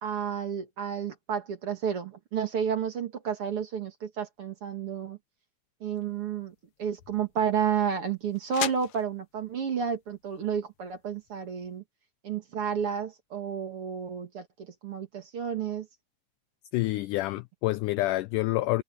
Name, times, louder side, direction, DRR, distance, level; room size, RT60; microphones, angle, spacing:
voice 1, 0.0-5.2 5.8-11.8 12.2-15.9, right 7 dB, 45° right, 2.4 m, -31 dB
sound 1, 5.8-11.8, left 11 dB, 70° left, 1.7 m, -42 dB
voice 2, 16.7-18.8, left 18 dB, 85° left, 1.8 m, -27 dB
omnidirectional pair, 4.1 m